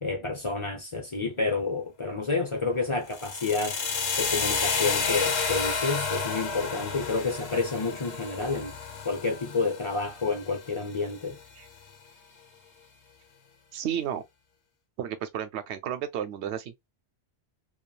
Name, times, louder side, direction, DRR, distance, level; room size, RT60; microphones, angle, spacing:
voice 1, 0.0-3.8 4.2-8.7 9.0-11.4, left 4 dB, 30° left, 0.7 m, -29 dB
sound 1, 3.1-11.1, left 5 dB, 65° left, 1.0 m, -31 dB
voice 2, 13.7-14.2 15.0-16.7, right 9 dB, 75° right, 0.8 m, -32 dB
3.1 x 2.3 x 2.3 m
omnidirectional pair, 1.2 m